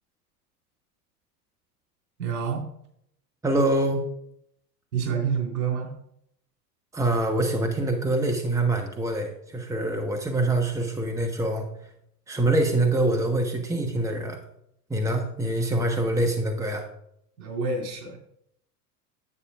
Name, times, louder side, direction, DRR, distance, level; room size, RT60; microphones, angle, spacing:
voice 1, 2.2-2.7 4.9-5.9 17.4-18.2, right 6 dB, 65° right, 0 dB, 3.6 m, -28 dB
voice 2, 3.4-4.0 6.9-11.7 12.3-14.4 14.9-16.8, right 2 dB, 5° right, 4 dB, 1.1 m, -25 dB
11.0 x 8.4 x 2.4 m, 0.72 s
figure-of-eight pair, 85°, 48 cm